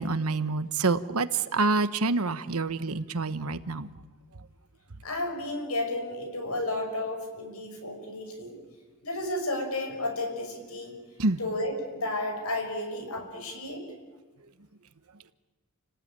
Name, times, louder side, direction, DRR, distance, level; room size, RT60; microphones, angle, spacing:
voice 1, 0.0-3.9 11.2-11.4, right 3 dB, 75° right, 12 dB, 1.2 m, -27 dB
voice 2, 5.0-8.6 9.0-10.9 11.4-13.8, left 1 dB, 75° left, 4 dB, 6.2 m, -32 dB
29.5 x 19.0 x 9.0 m, 1.3 s
head